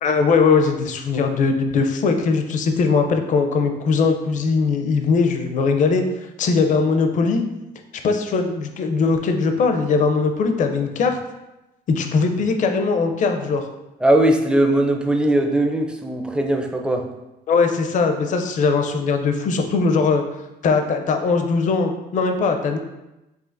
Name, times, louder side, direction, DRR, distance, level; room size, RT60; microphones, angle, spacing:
voice 1, 0.0-6.0 6.4-7.4 8.0-11.2 11.9-13.6 17.5-20.2 20.6-22.8, left 4 dB, 50° left, 6 dB, 0.5 m, -20 dB
voice 2, 14.0-17.1, right 1 dB, 5° right, 3 dB, 0.4 m, -19 dB
4.8 x 2.8 x 2.5 m, 0.97 s
cardioid pair, 110°, 17 cm